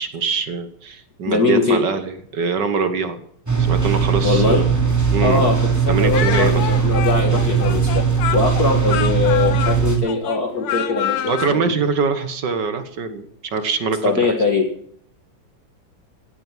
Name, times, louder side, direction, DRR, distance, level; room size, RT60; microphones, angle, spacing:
voice 1, 0.0-3.2 3.6-4.7 5.1-5.5 5.9-6.7 11.2-14.5, right 5 dB, 55° right, 10 dB, 1.7 m, -23 dB
voice 2, 1.2-1.8 4.2-4.6 5.2-5.6 5.9-8.0 8.3-11.6 14.0-14.7, left 4 dB, 45° left, 4 dB, 2.0 m, -21 dB
sound 1, 3.5-10.0, right 6 dB, 5° right, 3.1 m, -19 dB
Speech, 6.1-11.6, left 10 dB, 80° left, 1.9 m, -27 dB
16.5 x 9.0 x 7.3 m, 0.65 s
omnidirectional pair, 2.4 m